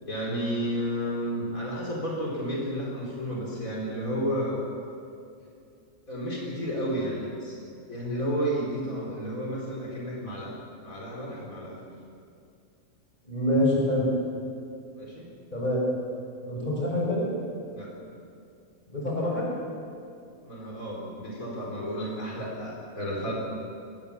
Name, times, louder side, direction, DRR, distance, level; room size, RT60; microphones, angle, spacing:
voice 1, 0.0-4.7 6.1-7.6 7.9-10.5 10.8-11.9 15.0-15.4 17.7-18.0 20.4-23.3, equal, 85° left, -3 dB, 4.9 m, -32 dB
voice 2, 13.2-14.1 15.5-15.8 16.5-17.3 18.9-19.5, left 1 dB, 30° left, -4 dB, 6.7 m, -26 dB
24.5 x 19.5 x 7.2 m, 2.5 s
omnidirectional pair, 1.4 m